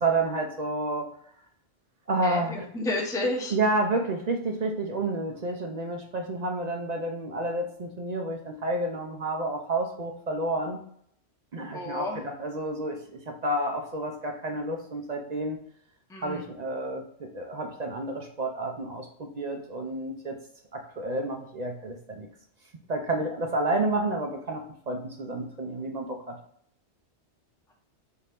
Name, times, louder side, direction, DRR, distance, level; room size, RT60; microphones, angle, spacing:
voice 1, 0.0-1.1 2.1-2.7 3.5-10.8 11.5-15.6 16.2-20.4 20.7-22.3 22.9-26.4, right 2 dB, 50° right, 3 dB, 0.5 m, -30 dB
voice 2, 2.2-3.5 11.7-12.2 16.1-16.4, left 2 dB, 5° left, -1 dB, 0.6 m, -31 dB
4.2 x 2.7 x 3.3 m, 0.66 s
omnidirectional pair, 1.2 m